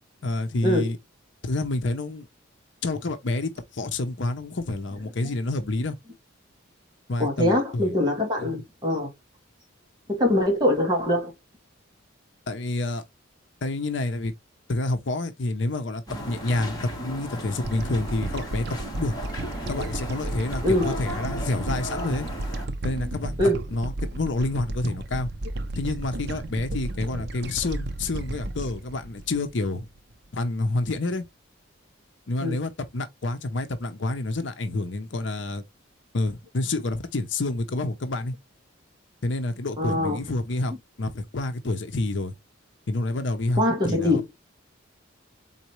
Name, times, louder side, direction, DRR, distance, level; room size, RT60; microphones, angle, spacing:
voice 1, 0.2-1.0 1.4-2.3 2.8-6.0 7.1-7.9 8.4-8.6 12.5-13.0 13.6-14.3 14.7-19.1 19.7-22.3 22.8-23.4 23.7-25.3 25.7-29.9 30.3-31.2 32.3-35.6 36.1-38.3 39.2-40.7 41.0-42.3 42.9-44.3, left 2 dB, 60° left, 0.7 m, -28 dB
voice 2, 7.2-9.1 10.1-11.3 20.6-20.9 23.4-23.6 32.4-32.6 39.8-40.2 43.6-44.2, left 1 dB, 20° right, 1.8 m, -23 dB
sound 1, 16.1-22.7, equal, 20° left, 1.9 m, -36 dB
sound 2, 17.6-30.1, right 2 dB, 55° right, 0.6 m, -33 dB
4.2 x 4.0 x 3.0 m
head